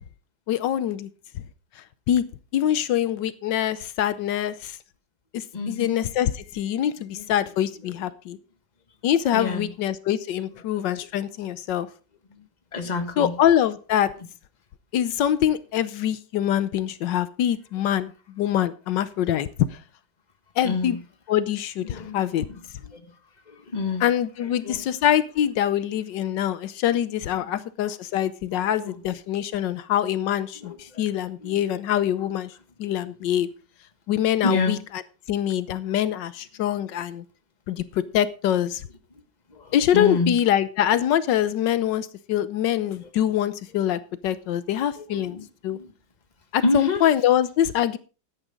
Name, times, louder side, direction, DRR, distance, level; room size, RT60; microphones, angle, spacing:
voice 1, 0.5-1.1 1.3-1.4 1.8-2.3 2.5-4.8 5.3-8.4 9.0-11.9 13.2-14.1 14.9-19.8 20.6-21.0 21.3-22.5 24.0-32.5 32.8-33.5 34.1-34.8 35.3-37.2 37.7-38.9 39.7-45.4 45.6-45.8 46.5-48.0, left 11 dB, 85° left, 1.4 m, -24 dB
voice 2, 5.5-6.0 7.1-7.3 7.8-8.1 9.3-9.7 10.7-11.1 12.3-13.4 17.8-17.9 20.6-21.0 21.8-24.1 24.4-24.8 27.4-27.9 28.5-29.0 30.5-31.1 31.4-31.6 34.4-34.9 39.1-39.2 39.5-40.4 42.9-43.3 45.0-45.9 46.6-47.1, left 3 dB, 25° left, 1.5 m, -30 dB
14.0 x 10.0 x 3.7 m
omnidirectional pair, 1.9 m